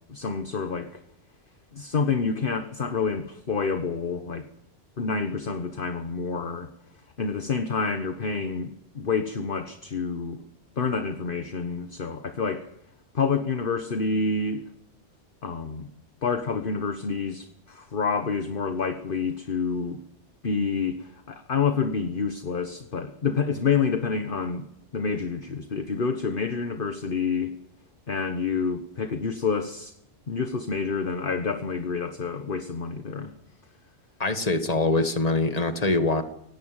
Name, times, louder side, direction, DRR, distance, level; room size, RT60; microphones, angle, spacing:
voice 1, 0.1-1.0 1.7-4.5 5.0-6.7 7.2-10.4 10.8-12.7 13.1-14.6 15.4-15.9 16.2-20.0 20.4-24.7 24.9-27.5 28.1-29.9 30.3-33.3, left 5 dB, 50° left, 8 dB, 1.4 m, -28 dB
voice 2, 34.2-36.2, left 2 dB, 30° left, 8 dB, 1.9 m, -23 dB
17.5 x 17.5 x 9.0 m, 0.78 s
omnidirectional pair, 1.2 m